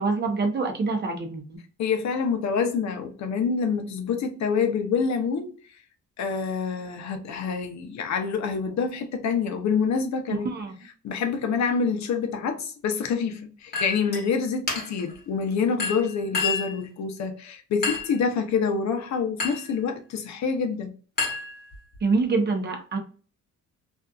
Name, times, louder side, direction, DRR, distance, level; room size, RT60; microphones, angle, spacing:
voice 1, 0.0-1.6 10.4-10.8 22.0-23.0, right 4 dB, 35° right, 0.7 m, -25 dB
voice 2, 1.8-5.5 6.2-10.5 11.0-20.9, left 5 dB, 60° left, 0.7 m, -27 dB
Chink clink, 13.7-14.2 14.7-15.1 15.8-16.8 17.8-18.2 19.4-19.7 21.2-22.0, left 4 dB, 30° left, 1.1 m, -29 dB
2.7 x 2.4 x 2.3 m
cardioid pair, 120°, 32 cm